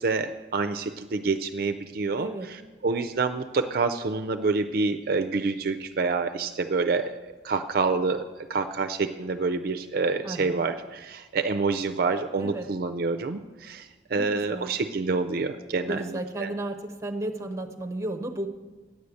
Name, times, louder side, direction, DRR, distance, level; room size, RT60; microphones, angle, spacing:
voice 1, 0.0-2.6 2.8-8.2 8.5-16.5, right 4 dB, 55° right, 8 dB, 0.4 m, -27 dB
voice 2, 2.2-2.5 10.2-10.7 12.3-12.7 14.1-14.7 15.8-18.5, right 1 dB, 15° right, 5 dB, 0.8 m, -34 dB
9.1 x 6.5 x 8.3 m, 1.2 s
head